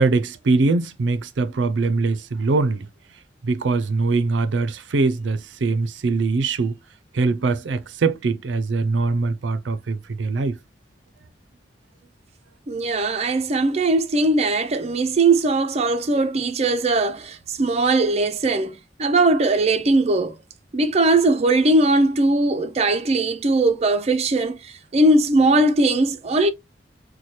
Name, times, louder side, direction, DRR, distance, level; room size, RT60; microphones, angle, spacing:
voice 1, 0.0-2.9 3.4-6.7 7.1-10.6, right 3 dB, 90° right, 0.5 m, -22 dB
voice 2, 12.7-20.4 20.7-26.5, right 2 dB, 35° right, 0.4 m, -20 dB
4.2 x 2.2 x 3.0 m
head